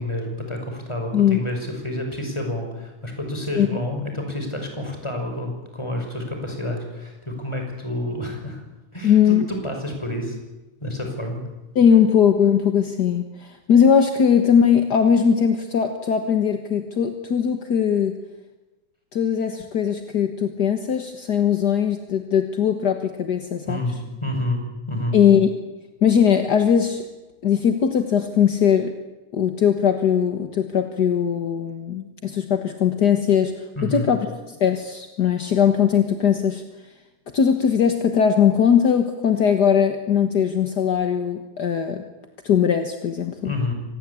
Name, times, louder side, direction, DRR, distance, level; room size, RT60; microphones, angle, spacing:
voice 1, 0.0-8.6 8.9-10.4 10.8-11.4 23.6-24.6 24.9-25.2 33.8-34.1 43.4-43.7, left 1 dB, 10° left, 3 dB, 5.7 m, -29 dB
voice 2, 9.0-9.4 11.7-18.2 19.1-23.8 25.1-25.5 26.0-27.1 27.4-28.9 29.3-36.6 37.3-42.0 42.4-43.5, left 8 dB, 50° left, 7 dB, 1.4 m, -20 dB
25.5 x 19.5 x 8.5 m, 1.1 s
omnidirectional pair, 3.5 m